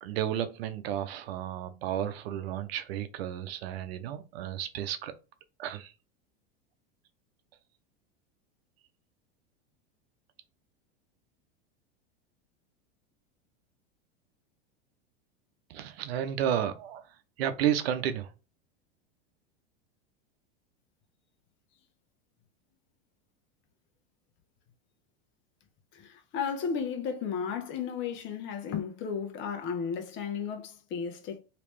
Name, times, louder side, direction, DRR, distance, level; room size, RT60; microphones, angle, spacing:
voice 1, 0.0-5.1 5.6-5.9 15.7-17.1 17.4-18.3, right 10 dB, 80° right, 0.7 m, -32 dB
voice 2, 25.9-31.4, left 6 dB, 40° left, 0.9 m, -34 dB
3.2 x 3.0 x 3.0 m
supercardioid pair, 120°, 30 cm